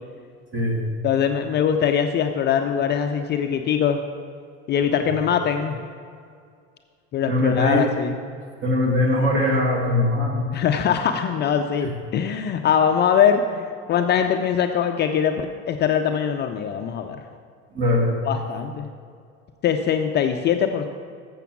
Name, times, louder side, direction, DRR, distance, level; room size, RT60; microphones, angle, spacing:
voice 1, 0.5-0.8 7.3-7.8 8.6-10.6 11.8-11.9 17.7-18.1, left 1 dB, 35° right, -1 dB, 2.2 m, -21 dB
voice 2, 1.0-4.0 4.7-5.8 7.1-8.1 10.5-17.2 18.2-18.9 19.6-20.8, left 8 dB, 30° left, 6 dB, 0.4 m, -22 dB
7.1 x 6.8 x 6.0 m, 2.2 s
supercardioid pair, 110°, 33 cm